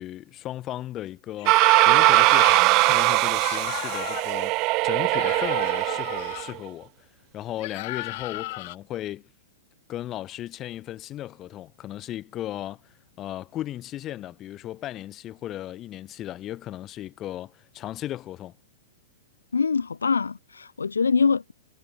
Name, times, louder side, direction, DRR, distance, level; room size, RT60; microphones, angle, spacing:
voice 1, 0.0-4.5 4.8-7.1 7.3-9.3 9.9-12.8 13.2-18.5, left 13 dB, 30° left, 1.2 m, -36 dB
sound 1, 1.4-2.7 3.3-4.4 5.1-6.5 7.6-8.8, left 20 dB, 50° left, 1.6 m, -35 dB
sound 2, 1.5-6.5, right 24 dB, 40° right, 0.5 m, -20 dB
voice 2, 19.5-21.5, left 5 dB, 80° left, 0.5 m, -24 dB
figure-of-eight pair, 110°, 0 cm